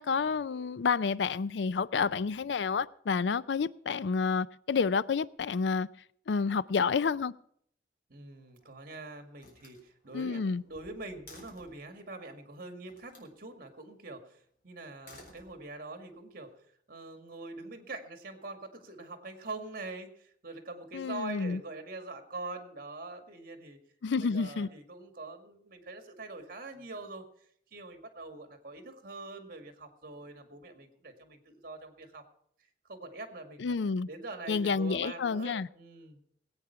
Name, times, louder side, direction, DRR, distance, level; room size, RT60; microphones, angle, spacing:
voice 1, 0.0-5.9 6.3-7.3 10.1-10.6 20.9-21.6 24.0-24.7 33.6-34.1 34.5-35.7, left 5 dB, 80° left, 0.4 m, -29 dB
voice 2, 8.1-16.5 16.9-23.8 24.2-27.2 27.7-32.2 32.9-33.8 34.1-36.2, right 2 dB, 55° right, 2.1 m, -44 dB
Slam, 8.3-8.9 9.4-11.8 12.9-13.3 14.8-16.0, left 2 dB, 50° left, 4.1 m, -56 dB
19.0 x 8.9 x 5.7 m
head